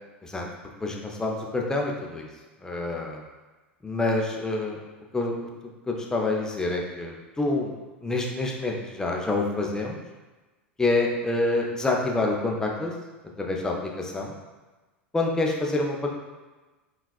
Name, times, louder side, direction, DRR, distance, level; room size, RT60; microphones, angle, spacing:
voice 1, 0.8-2.3 2.6-3.2 3.8-4.8 5.1-5.5 5.9-7.7 8.0-10.0 10.8-12.9 13.4-14.4 15.1-16.1, left 2 dB, 10° left, -1 dB, 0.5 m, -27 dB
5.5 x 2.4 x 2.3 m, 1.2 s
figure-of-eight pair, 80°, 6 cm